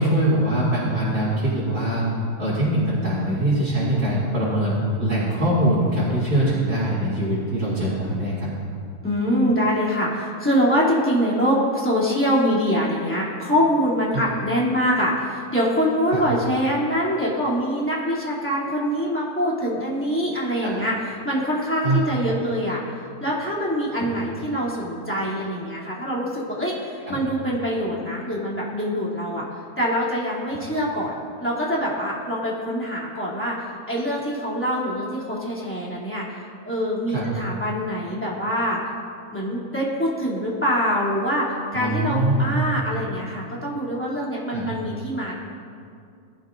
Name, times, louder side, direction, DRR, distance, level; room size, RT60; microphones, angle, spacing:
voice 1, 0.0-2.1 2.4-8.5 16.1-16.2 20.6-20.7 21.8-22.0 24.0-24.1 27.1-27.2 37.1-37.3 41.7-42.6 44.5-44.7, right 1 dB, 65° right, -10 dB, 3.5 m, -22 dB
voice 2, 9.0-22.8 23.2-29.5 29.8-36.2 36.6-38.8 39.3-45.4, equal, 5° left, -7 dB, 2.8 m, -24 dB
20.5 x 12.0 x 2.6 m, 2.4 s
omnidirectional pair, 1.7 m